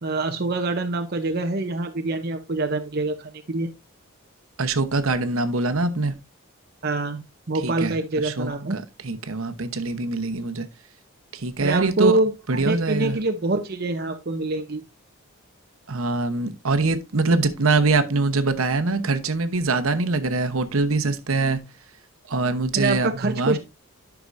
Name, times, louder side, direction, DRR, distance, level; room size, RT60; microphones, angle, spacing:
voice 1, 0.0-3.7 6.8-8.8 11.6-14.8 22.7-23.6, right 2 dB, 45° right, 0.7 m, -25 dB
voice 2, 4.6-6.1 7.5-10.7 11.3-12.2 12.5-13.2 15.9-21.6 22.3-23.6, right 3 dB, 75° right, 1.0 m, -24 dB
11.5 x 6.0 x 2.6 m
head